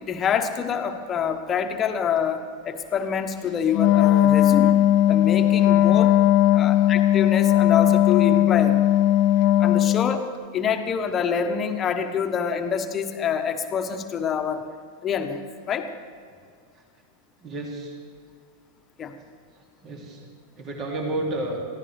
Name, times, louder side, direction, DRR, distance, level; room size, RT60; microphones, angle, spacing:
voice 1, 0.0-4.7 5.1-6.1 6.5-8.8 9.6-10.3 10.5-14.7 15.0-15.9 19.0-19.1, left 7 dB, 25° left, 7 dB, 1.3 m, -26 dB
Wind instrument woodwind instrument, 3.7-10.2, left 13 dB, 45° left, 0.4 m, -18 dB
voice 2, 17.4-17.9 19.6-20.2 20.6-21.6, right 2 dB, 35° right, 0 dB, 2.8 m, -31 dB
22.5 x 15.0 x 3.5 m, 2.1 s
figure-of-eight pair, 90°, 0 cm